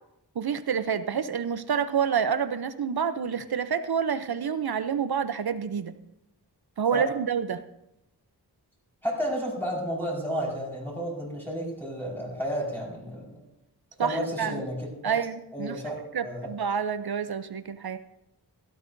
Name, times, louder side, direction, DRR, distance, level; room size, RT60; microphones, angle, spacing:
voice 1, 0.4-5.9 6.8-7.6 14.0-14.6 15.0-15.8 16.1-18.0, right 7 dB, 70° right, 11 dB, 0.7 m, -28 dB
voice 2, 9.0-13.4 14.0-14.9 15.5-16.5, equal, 5° left, -5 dB, 4.8 m, -32 dB
16.5 x 13.0 x 2.6 m, 0.84 s
wide cardioid pair, 75°, 40 cm